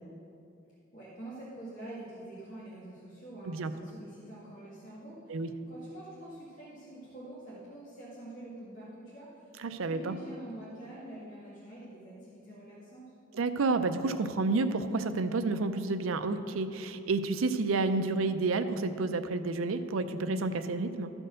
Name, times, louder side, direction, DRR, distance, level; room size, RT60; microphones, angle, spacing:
voice 1, 0.9-13.1, right 1 dB, 40° left, -9 dB, 1.9 m, -46 dB
voice 2, 9.6-10.2 13.3-21.1, right 3 dB, 85° right, 9 dB, 0.5 m, -30 dB
13.5 x 4.5 x 6.3 m, 2.6 s
head